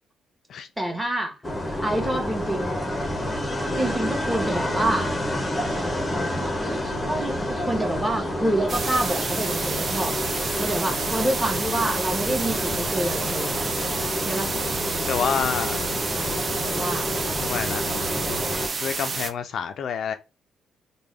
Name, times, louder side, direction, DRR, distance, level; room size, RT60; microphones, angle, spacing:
voice 1, 0.8-2.8 3.8-5.1 7.0-10.2 10.6-13.7 14.2-14.5 16.7-17.1, right 1 dB, 5° right, 1.1 m, -27 dB
sound 1, 1.4-18.7, left 1 dB, 20° left, 0.8 m, -29 dB
sound 2, 8.7-19.3, right 4 dB, 35° right, 0.4 m, -29 dB
voice 2, 15.1-15.9 17.4-17.9 18.8-20.1, left 7 dB, 65° left, 0.3 m, -28 dB
3.3 x 2.2 x 3.2 m
cardioid pair, 90°, 0 cm